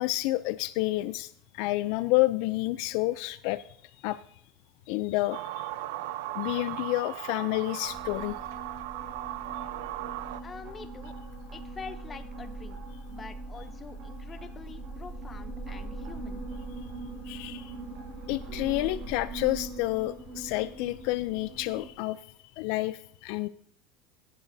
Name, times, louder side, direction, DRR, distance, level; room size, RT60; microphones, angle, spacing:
voice 1, 0.0-3.6 4.0-4.2 4.9-5.7 6.3-8.4 17.3-17.7 18.3-22.2 22.6-23.5, left 18 dB, 55° left, 15 dB, 0.3 m, -29 dB
sound 1, 5.3-10.4, right 14 dB, 80° right, 0.5 m, -37 dB
sound 2, 7.9-21.9, right 2 dB, 55° right, 4.7 m, -41 dB
voice 2, 10.4-11.1 11.5-12.8 13.1-16.4, left 5 dB, 15° left, 10 dB, 0.6 m, -45 dB
16.5 x 10.5 x 2.6 m, 0.67 s
cardioid pair, 175°, 0 cm